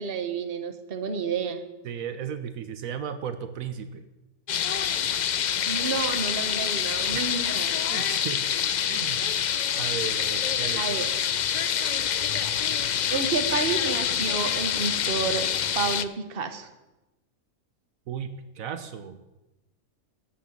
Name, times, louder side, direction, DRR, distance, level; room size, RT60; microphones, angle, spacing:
voice 1, 0.0-1.6 5.7-7.7 10.8-11.1 13.1-15.5 15.7-16.7, right 5 dB, 45° right, 8 dB, 1.2 m, -30 dB
voice 2, 1.8-4.0 7.1-7.2 7.9-8.4 8.9-9.3 9.7-10.8 12.1-12.2 18.1-19.2, right 8 dB, 75° right, 10 dB, 1.2 m, -35 dB
sound 1, 4.5-16.0, left 8 dB, 90° left, 0.4 m, -26 dB
11.5 x 8.5 x 7.3 m, 1.0 s
omnidirectional pair, 1.4 m